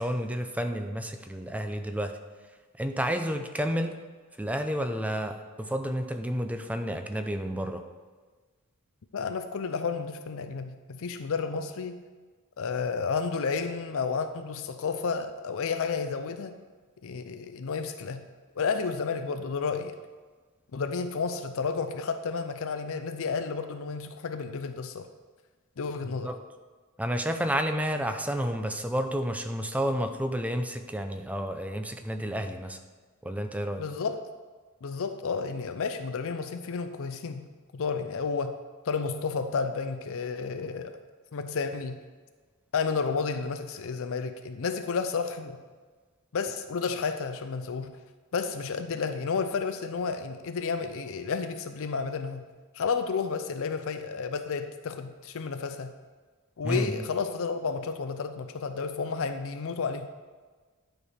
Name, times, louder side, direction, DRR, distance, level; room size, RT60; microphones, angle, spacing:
voice 1, 0.0-2.2 2.8-4.0 4.4-7.8 26.2-26.4 27.0-32.8 33.2-33.8 56.6-57.1, equal, 5° right, 6 dB, 0.5 m, -30 dB
voice 2, 9.1-12.0 12.6-16.6 17.0-18.3 18.6-20.0 20.7-25.1 25.8-26.3 33.8-34.2 34.8-37.5 37.7-38.6 38.9-41.0 41.3-42.0 42.7-45.6 46.3-48.0 48.3-52.5 52.7-55.9 56.6-60.1, left 5 dB, 65° left, 9 dB, 0.5 m, -31 dB
11.0 x 4.6 x 5.0 m, 1.4 s
head